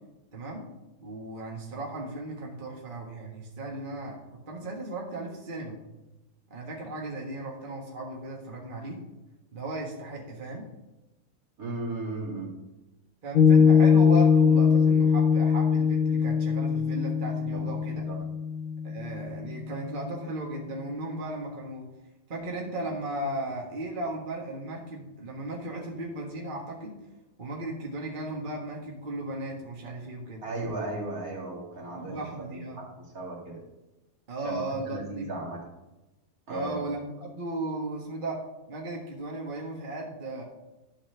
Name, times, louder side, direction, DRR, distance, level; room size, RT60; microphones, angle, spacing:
voice 1, 0.3-0.6 1.0-5.8 6.5-9.0 9.5-10.7 13.2-18.0 18.8-21.9 22.3-27.0 27.4-30.4 31.9-32.8 34.3-35.3 36.5-38.4 38.7-40.4, right 2 dB, 35° right, -2 dB, 1.6 m, -36 dB
voice 2, 11.6-12.5 17.5-18.2 30.4-33.6 34.4-35.6 36.5-36.8, right 2 dB, 65° right, -3 dB, 2.8 m, -36 dB
Piano, 13.3-20.0, left 6 dB, 70° left, 0.5 m, -22 dB
11.5 x 4.2 x 6.7 m, 1.0 s
omnidirectional pair, 1.7 m